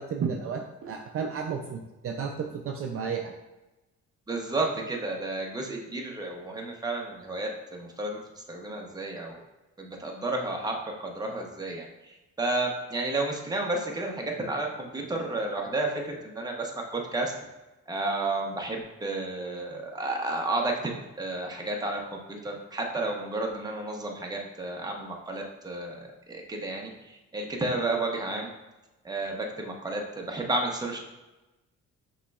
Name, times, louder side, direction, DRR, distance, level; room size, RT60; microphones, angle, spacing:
voice 1, 0.0-3.3, right 6 dB, 50° right, 2 dB, 0.5 m, -32 dB
voice 2, 4.3-9.4 9.8-10.7 11.0-17.3 17.9-20.9 21.2-28.5 29.0-31.0, right 2 dB, 15° right, 0 dB, 0.8 m, -32 dB
5.6 x 3.1 x 2.3 m, 1.0 s
cardioid pair, 90°, 30 cm